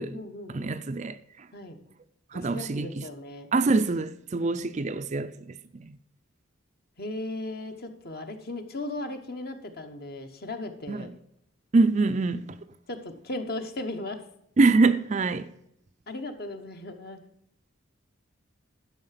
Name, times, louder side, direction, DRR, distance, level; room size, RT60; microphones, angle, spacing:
voice 1, 0.0-0.7 1.5-1.8 2.3-3.5 4.4-4.5 7.0-11.1 12.9-14.2 16.1-17.2, left 2 dB, 45° left, 1.1 m, -37 dB
voice 2, 0.5-1.5 2.3-3.1 3.5-5.6 5.8-6.0 10.9-11.1 11.7-12.5 14.6-15.5, right 3 dB, 35° right, 0.4 m, -25 dB
11.5 x 5.7 x 5.8 m
head